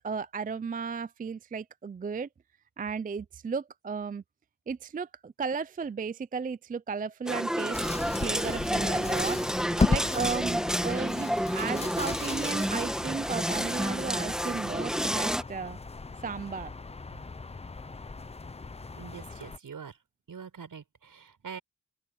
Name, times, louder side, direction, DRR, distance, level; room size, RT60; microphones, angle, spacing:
voice 1, 0.0-2.3 2.8-4.2 4.7-7.8 8.2-9.4 9.9-15.8 16.2-16.7, right 5 dB, 25° right, 0.4 m, -34 dB
sound 1, 7.3-15.4, equal, ahead, 1.7 m, -30 dB
sound 2, 7.7-19.6, left 4 dB, 20° left, 0.6 m, -35 dB
voice 2, 19.0-20.0 20.3-21.6, right 6 dB, 65° right, 6.1 m, -44 dB
open air
wide cardioid pair, 120°, 35 cm